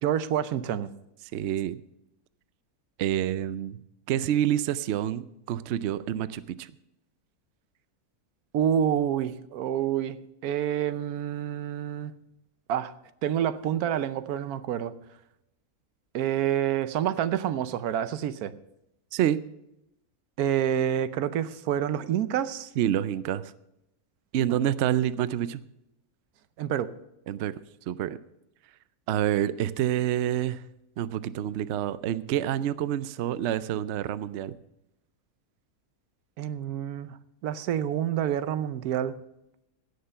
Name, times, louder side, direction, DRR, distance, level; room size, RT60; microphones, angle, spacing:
voice 1, 0.0-0.9 8.5-10.2 10.4-12.1 12.7-12.9 13.2-14.9 16.1-18.5 20.4-22.7 24.5-24.6 26.6-26.9 36.4-37.2 37.4-39.1, right 10 dB, 85° right, 14 dB, 1.2 m, -28 dB
voice 2, 1.3-1.8 3.0-3.8 4.1-6.7 19.1-19.4 22.8-23.5 24.3-25.6 27.3-27.5 27.9-28.2 29.1-30.6 31.0-34.5, right 11 dB, 65° right, 15 dB, 0.7 m, -27 dB
16.5 x 6.7 x 5.6 m, 0.85 s
omnidirectional pair, 1.6 m